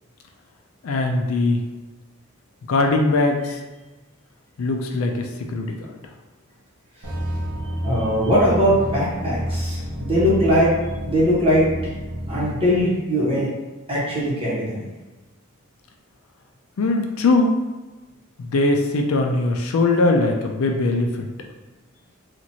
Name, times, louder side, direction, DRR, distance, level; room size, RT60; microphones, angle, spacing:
voice 1, 0.8-1.6 2.7-3.6 4.6-5.9 16.8-17.6 18.4-21.3, left 2 dB, 75° left, 3 dB, 0.4 m, -21 dB
sound 1, 7.0-12.9, equal, 90° right, 0.7 m, -29 dB
voice 2, 7.8-10.7 11.0-11.7 12.3-13.5 13.9-14.9, equal, 25° right, -8 dB, 1.1 m, -20 dB
3.0 x 2.4 x 2.7 m, 1.1 s
head